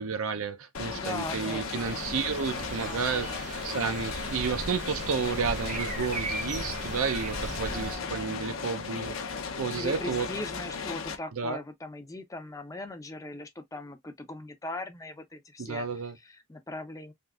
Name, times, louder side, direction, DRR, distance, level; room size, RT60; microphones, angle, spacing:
voice 1, 0.0-9.2 9.6-10.3 11.3-11.6 15.6-16.2, right 5 dB, 70° right, 0.6 m, -31 dB
sound 1, 0.7-11.2, left 5 dB, 65° left, 0.7 m, -36 dB
voice 2, 0.8-2.0 2.9-3.4 7.6-8.8 9.8-15.9 16.2-17.1, left 2 dB, 15° left, 0.5 m, -40 dB
sound 2, 1.8-8.0, right 2 dB, 35° right, 0.8 m, -37 dB
3.6 x 2.7 x 2.3 m
head